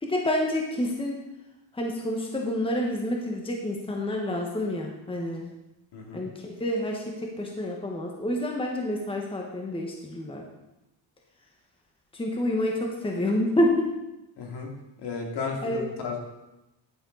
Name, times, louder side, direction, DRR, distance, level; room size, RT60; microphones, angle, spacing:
voice 1, 0.0-1.2 1.7-5.5 6.1-10.4 12.1-13.9 15.6-15.9, left 1 dB, 10° left, 0 dB, 1.3 m, -28 dB
voice 2, 5.9-6.2 14.4-14.7 15.0-16.2, left 4 dB, 60° left, 0 dB, 2.5 m, -33 dB
10.5 x 9.0 x 3.9 m, 0.96 s
cardioid pair, 130°, 46 cm